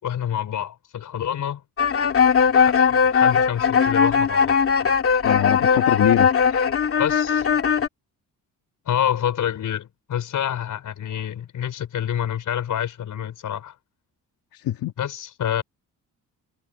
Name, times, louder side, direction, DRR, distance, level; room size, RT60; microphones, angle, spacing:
voice 1, 0.0-1.6 2.5-4.6 7.0-7.5 8.9-13.8 15.0-15.6, left 10 dB, 60° left, 5.4 m, -27 dB
sound 1, 1.8-7.9, left 6 dB, 40° left, 2.4 m, -19 dB
voice 2, 5.2-6.7 14.5-14.9, left 13 dB, 85° left, 2.2 m, -24 dB
cardioid pair, 140°, 34 cm